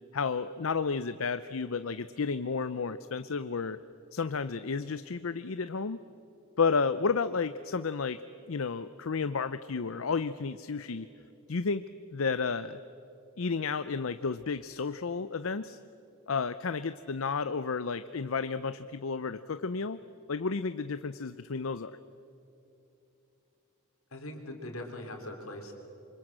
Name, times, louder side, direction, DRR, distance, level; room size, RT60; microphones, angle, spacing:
voice 1, 0.1-3.8 4.1-6.0 6.6-8.2 8.5-11.1 11.5-11.8 12.1-12.8 13.4-15.8 16.3-20.0 20.3-21.9, left 5 dB, 70° left, 12 dB, 0.6 m, -32 dB
voice 2, 24.1-25.7, left 1 dB, 90° left, 3 dB, 4.0 m, -41 dB
27.5 x 25.0 x 7.6 m, 2.9 s
head